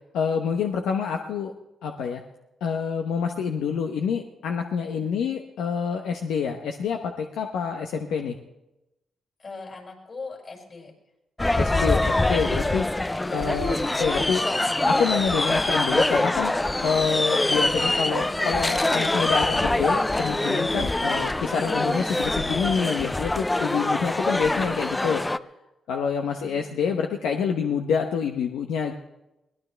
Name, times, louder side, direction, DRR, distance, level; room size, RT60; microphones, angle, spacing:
voice 1, 0.1-1.5 1.8-2.2 2.6-8.4 11.6-12.9 13.3-14.4 14.9-16.5 16.8-25.2 25.9-28.9, left 6 dB, 85° left, 3 dB, 1.0 m, -27 dB
voice 2, 9.4-10.9 26.4-26.8, left 3 dB, 50° left, 0 dB, 6.5 m, -41 dB
sound 1, 11.4-25.4, left 2 dB, 20° left, 0.5 m, -24 dB
21.5 x 18.5 x 3.4 m, 0.93 s
supercardioid pair, 60°, 0 cm